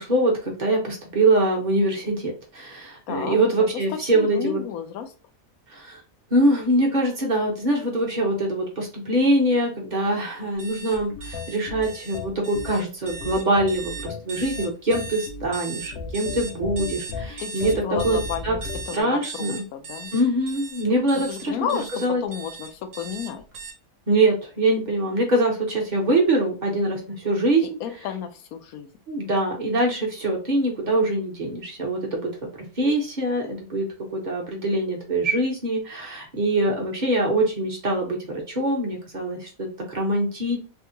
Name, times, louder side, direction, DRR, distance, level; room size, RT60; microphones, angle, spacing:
voice 1, 0.0-4.6 5.7-6.0 6.3-18.2 18.4-18.5 18.9-19.6 20.1-21.5 22.0-22.2 24.1-27.6 29.1-32.3 32.8-40.6, right 1 dB, 35° right, 0 dB, 1.0 m, -23 dB
voice 2, 3.1-5.1 17.4-20.1 21.1-23.4 27.6-28.9, left 8 dB, 85° left, 7 dB, 1.1 m, -32 dB
sound 1, 10.6-23.7, right 5 dB, 65° right, 1.2 m, -38 dB
sound 2, 11.1-19.0, left 4 dB, 65° left, 0.8 m, -35 dB
3.5 x 2.3 x 2.7 m, 0.34 s
omnidirectional pair, 1.5 m